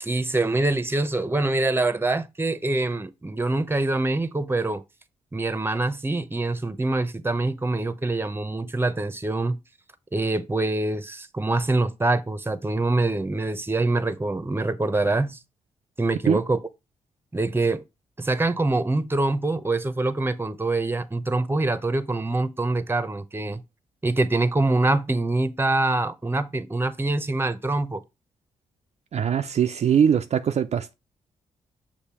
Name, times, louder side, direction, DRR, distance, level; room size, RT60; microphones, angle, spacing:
voice 1, 0.0-4.8 5.3-9.6 10.1-15.4 16.0-16.6 17.3-17.8 18.2-23.6 24.0-28.0, right 2 dB, 15° right, 0.8 m, -25 dB
voice 2, 29.1-30.9, right 8 dB, 50° right, 0.4 m, -21 dB
6.6 x 2.7 x 5.7 m
supercardioid pair, 50°, 14 cm